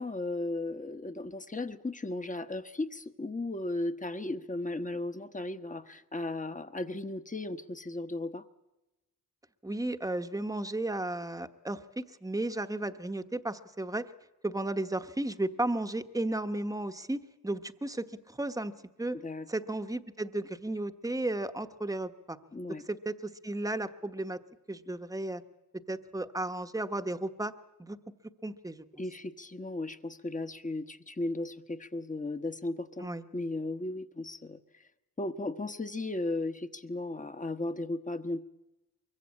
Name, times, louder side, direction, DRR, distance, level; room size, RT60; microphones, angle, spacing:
voice 1, 0.0-8.4 19.2-19.5 22.5-22.8 29.0-34.8 35.2-38.4, left 2 dB, 20° left, 9 dB, 1.1 m, -36 dB
voice 2, 9.6-14.1 14.4-18.7 19.0-19.2 19.5-22.4 22.9-24.4 24.7-25.4 25.9-27.5 27.8-28.0 28.4-28.8 33.0-33.2, right 2 dB, 10° right, 9 dB, 1.0 m, -34 dB
23.5 x 22.5 x 8.7 m, 1.0 s
cardioid pair, 80°, 34 cm